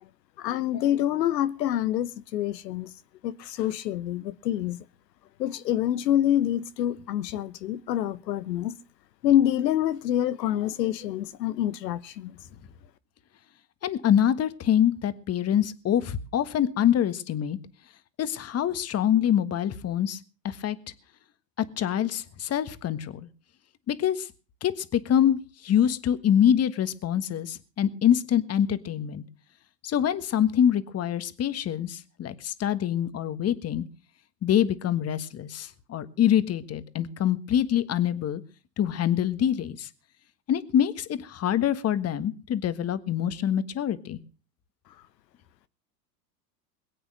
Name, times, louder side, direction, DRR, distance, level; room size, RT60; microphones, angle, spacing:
voice 1, 0.4-2.9 3.2-4.9 5.4-8.8 9.2-12.4, left 11 dB, 80° left, 1.0 m, -26 dB
voice 2, 13.8-17.6 18.2-20.2 20.4-20.8 21.6-23.3 23.9-24.3 24.6-29.2 29.8-33.8 34.4-38.4 38.8-39.9 40.5-44.2, left 10 dB, 30° left, 1.5 m, -25 dB
21.5 x 8.8 x 6.4 m
hypercardioid pair, 95°, 49 cm